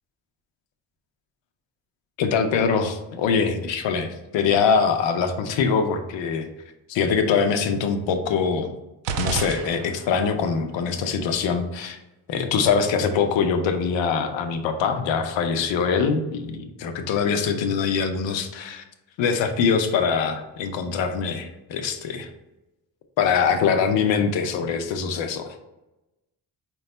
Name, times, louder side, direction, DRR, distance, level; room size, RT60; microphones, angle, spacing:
voice 1, 2.2-6.5 6.9-8.7 9.2-12.0 12.3-18.8 19.2-22.3 23.2-25.6, left 6 dB, 80° left, 6 dB, 0.7 m, -23 dB
sound 1, 9.0-10.4, right 5 dB, 85° right, 0.5 m, -29 dB
4.6 x 2.2 x 4.0 m, 0.99 s
supercardioid pair, 65°, 44 cm